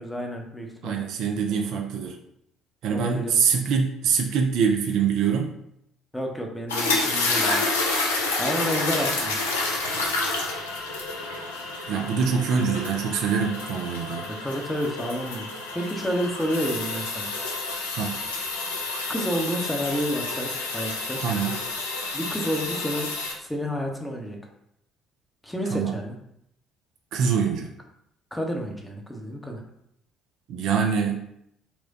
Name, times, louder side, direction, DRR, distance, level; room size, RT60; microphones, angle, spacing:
voice 1, 0.0-1.0 2.8-3.3 6.1-7.6 8.4-9.4 14.3-15.5 15.7-17.3 19.1-21.2 22.1-23.1 23.4-24.4 25.4-26.1 28.3-29.6, equal, 5° left, 1 dB, 0.7 m, -30 dB
voice 2, 0.8-2.2 2.8-5.5 9.9-10.0 11.9-14.3 18.0-18.2 21.2-21.6 25.7-25.9 27.1-27.7 30.5-31.2, right 6 dB, 55° right, 2 dB, 0.3 m, -24 dB
sound 1, 6.7-23.3, left 3 dB, 75° left, 0.4 m, -29 dB
4.2 x 2.2 x 2.7 m, 0.76 s
figure-of-eight pair, 50°, 0 cm